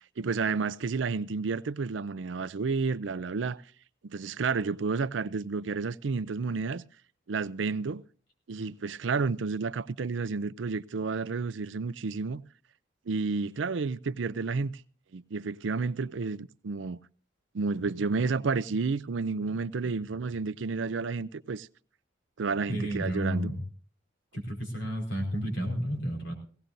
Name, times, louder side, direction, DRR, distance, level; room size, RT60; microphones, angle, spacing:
voice 1, 0.2-3.6 4.0-6.8 7.3-8.0 8.5-12.4 13.1-14.8 15.1-17.0 17.5-21.7 22.4-23.5, right 4 dB, 75° right, 0.5 m, -31 dB
voice 2, 22.7-23.6 24.3-26.3, equal, 70° left, 4.8 m, -31 dB
18.0 x 17.0 x 2.6 m
head